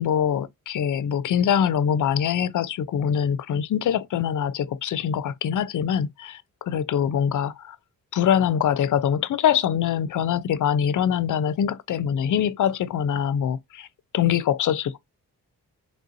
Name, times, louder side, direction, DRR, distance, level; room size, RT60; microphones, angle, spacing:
voice 1, 0.0-7.8 8.1-13.9 14.1-15.0, left 9 dB, 55° left, 0.5 m, -24 dB
3.4 x 2.6 x 2.5 m
cardioid pair, 80°, 36 cm